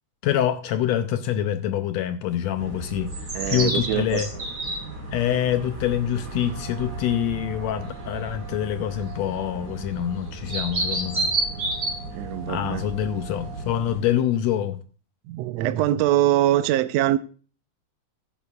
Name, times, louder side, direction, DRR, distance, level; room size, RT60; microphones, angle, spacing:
voice 1, 0.2-3.1 3.5-4.3 5.1-11.3 12.5-14.8, left 10 dB, 75° left, 1.7 m, -25 dB
sound 1, 2.5-14.0, right 2 dB, 30° right, 3.5 m, -32 dB
voice 2, 3.3-4.4 12.1-12.9 15.3-17.2, right 13 dB, 80° right, 1.6 m, -23 dB
15.0 x 10.5 x 2.4 m
omnidirectional pair, 3.5 m